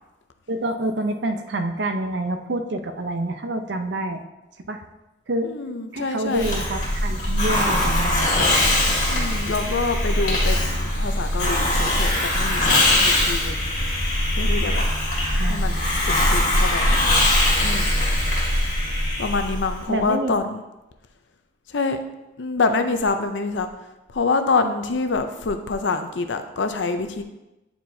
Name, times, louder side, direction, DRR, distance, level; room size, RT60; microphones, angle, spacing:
voice 1, 0.5-4.2 4.7-4.8 5.3-5.5 5.9-8.5 15.4-16.0 19.9-20.3, right 1 dB, 70° right, 7 dB, 0.6 m, -27 dB
voice 2, 5.4-6.5 9.0-13.7 14.3-14.9 15.4-16.9 17.6-17.9 19.2-20.6 21.7-22.0 22.4-23.7 24.1-27.2, left 3 dB, 80° left, 8 dB, 0.6 m, -26 dB
Hiss, 6.3-19.8, left 1 dB, 45° left, 1.7 m, -21 dB
9.3 x 4.4 x 2.7 m, 0.98 s
head